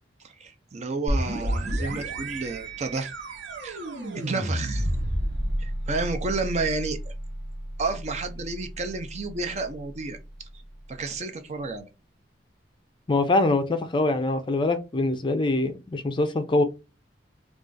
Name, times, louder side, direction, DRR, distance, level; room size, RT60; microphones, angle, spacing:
voice 1, 0.2-3.1 3.6-3.8 4.1-4.9 5.6-7.1 7.8-10.5 10.9-11.9, right 3 dB, 40° right, 0.5 m, -31 dB
sound 1, 1.1-10.6, right 1 dB, 75° right, 0.9 m, -31 dB
voice 2, 13.1-16.6, left 2 dB, 25° left, 0.4 m, -24 dB
2.4 x 2.4 x 3.8 m
head